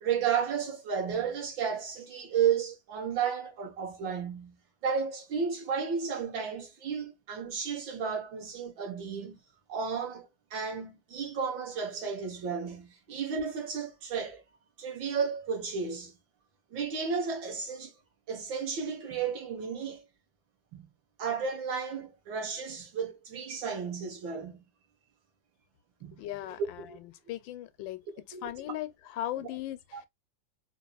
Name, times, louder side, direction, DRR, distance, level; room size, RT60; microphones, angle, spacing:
voice 1, 0.0-4.6 4.8-9.4 9.7-14.4 14.8-16.1 16.7-17.9 18.3-20.0 20.7-20.9 21.2-24.6 26.0-26.2 26.8-27.0 28.3-28.4 29.9-30.0, right 6 dB, 90° right, 2.1 m, -33 dB
voice 2, 26.2-28.0 28.4-30.1, left 13 dB, 85° left, 1.3 m, -38 dB
4.6 x 2.9 x 2.3 m
omnidirectional pair, 2.0 m